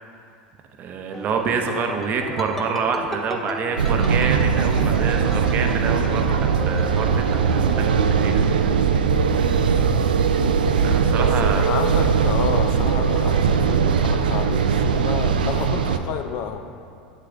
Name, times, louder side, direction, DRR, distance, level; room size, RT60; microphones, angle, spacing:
voice 1, 0.8-8.5 10.8-11.8, right 5 dB, 40° right, 4 dB, 0.8 m, -27 dB
sound 1, 1.1-9.4 9.7-10.3, equal, 5° left, 0.8 m, -35 dB
sound 2, 3.8-16.0, right 6 dB, 85° right, 0.4 m, -20 dB
voice 2, 11.1-16.6, left 7 dB, 50° left, 6 dB, 0.6 m, -30 dB
8.6 x 6.8 x 3.8 m, 2.5 s
hypercardioid pair, 90°, 5 cm